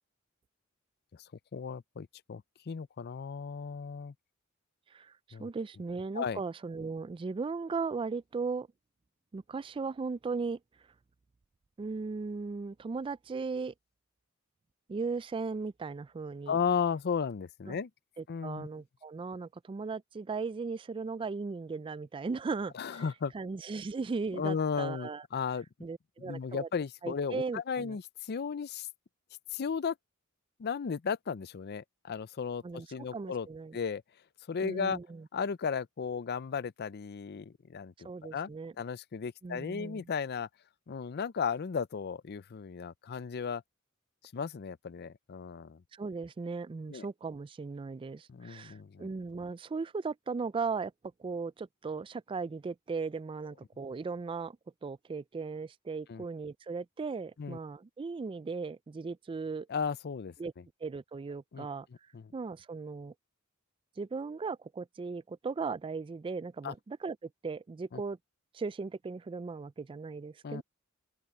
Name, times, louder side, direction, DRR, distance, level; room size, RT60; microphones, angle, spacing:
voice 1, 1.5-4.1 5.3-5.5 6.1-6.4 16.5-17.9 18.3-18.7 22.7-23.3 24.3-25.7 26.2-28.9 29.5-29.9 30.6-33.5 33.7-34.0 34.5-35.0 35.3-38.5 38.8-40.5 40.9-43.6 44.3-45.8 46.9-47.1 48.3-49.1 56.1-56.2 57.4-57.6 59.7-60.3 61.5-61.7 62.1-62.3 66.6-66.7 67.9-68.0 70.4-70.6, left 6 dB, 50° left, 0.5 m, -35 dB
voice 2, 4.9-8.7 9.3-10.6 11.8-13.7 14.9-16.6 17.7-17.8 18.2-23.0 23.3-25.2 25.8-26.7 27.0-28.0 32.6-32.9 33.1-33.8 34.6-35.3 38.0-38.7 39.4-40.1 45.9-50.9 51.2-54.6 54.8-59.7 60.4-60.5 60.8-61.9 62.3-63.1 64.0-68.2 68.5-70.6, right 4 dB, 25° right, 0.3 m, -37 dB
open air
head